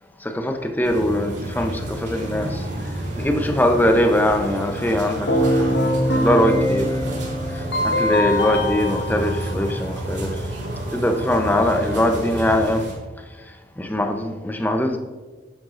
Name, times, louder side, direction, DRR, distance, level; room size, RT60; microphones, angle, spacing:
voice 1, 0.2-2.6 3.2-7.0 7.8-10.3 10.9-12.8 13.8-15.0, left 1 dB, 10° left, 0.7 m, -21 dB
sound 1, 0.8-12.9, right 1 dB, 80° right, 2.6 m, -30 dB
Keyboard (musical), 5.3-10.2, left 1 dB, 80° left, 1.5 m, -23 dB
11.0 x 9.0 x 2.5 m
head